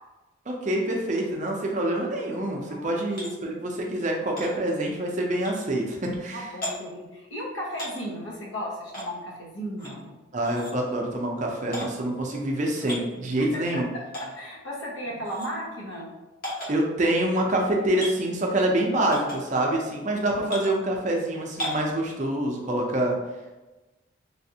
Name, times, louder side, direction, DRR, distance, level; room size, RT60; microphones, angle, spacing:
voice 1, 0.5-6.5 10.3-13.9 16.7-23.2, right 1 dB, 40° right, 0 dB, 0.5 m, -26 dB
voice 2, 2.7-3.1 6.3-10.2 13.4-13.8 14.1-16.1, equal, 80° left, -3 dB, 0.9 m, -35 dB
sound 1, 3.1-3.3 4.4-4.5 5.4-5.6 6.6-6.7 7.7-8.0 8.9-9.1 9.8-10.0 10.4-10.7 11.7-11.9 12.7-13.0 14.1-14.3 15.2-15.5 16.4-16.7 18.0-18.1 19.1-19.4 20.5-20.7 21.6-21.9, equal, 50° left, 1.0 m, -34 dB
3.3 x 2.5 x 2.7 m, 1.1 s
head